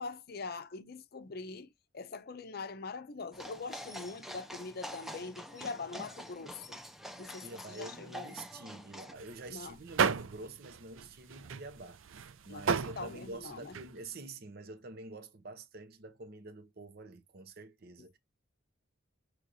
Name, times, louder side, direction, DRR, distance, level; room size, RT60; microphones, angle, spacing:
voice 1, 0.0-1.7 1.9-6.8 7.2-8.3 9.5-9.8 12.5-13.8, left 4 dB, 50° left, 0.6 m, -43 dB
sound 1, 3.3-9.1, equal, ahead, 0.5 m, -46 dB
voice 2, 7.4-18.2, right 2 dB, 50° right, 0.8 m, -47 dB
sound 2, 9.2-14.0, right 6 dB, 85° right, 0.5 m, -34 dB
6.4 x 3.1 x 2.6 m
head